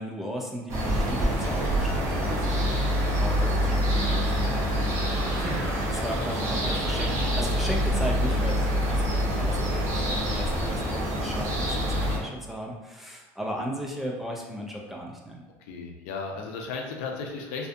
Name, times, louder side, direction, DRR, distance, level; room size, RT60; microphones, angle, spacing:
voice 1, 0.0-2.8 3.1-15.4, equal, 5° right, -1 dB, 0.3 m, -36 dB
sound 1, 0.7-12.2, equal, 40° right, 0.6 m, -26 dB
voice 2, 15.6-17.7, left 4 dB, 85° left, 2 dB, 0.4 m, -35 dB
2.6 x 2.2 x 2.4 m, 1.2 s
cardioid pair, 135°, 7 cm